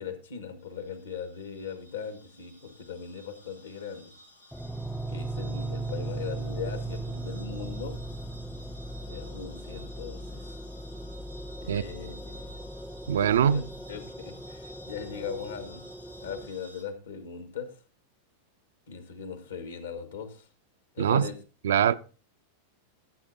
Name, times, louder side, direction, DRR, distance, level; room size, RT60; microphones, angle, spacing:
voice 1, 0.0-4.1 5.1-8.0 9.0-10.6 11.6-12.6 13.4-15.8 16.2-17.8 18.9-20.5 20.9-21.4, left 6 dB, 65° left, 1.5 m, -39 dB
sound 1, 0.6-16.8, equal, 85° left, 2.0 m, -53 dB
sound 2, 4.5-16.5, right 2 dB, ahead, 0.5 m, -38 dB
voice 2, 13.1-13.6 21.0-21.3 21.6-21.9, right 8 dB, 60° right, 0.4 m, -22 dB
13.5 x 8.3 x 2.7 m
figure-of-eight pair, 90°, 0 cm